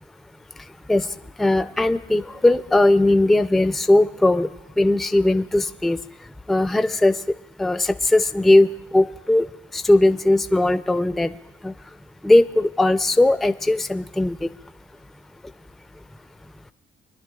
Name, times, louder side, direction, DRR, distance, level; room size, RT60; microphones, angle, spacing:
voice 1, 1.4-4.5 4.8-6.0 6.5-7.1 7.6-8.7 8.9-9.5 9.7-11.3 11.6-11.7 12.2-14.5, left 2 dB, ahead, 12 dB, 0.3 m, -18 dB
27.5 x 10.5 x 2.3 m, 0.91 s
cardioid pair, 90°, 20 cm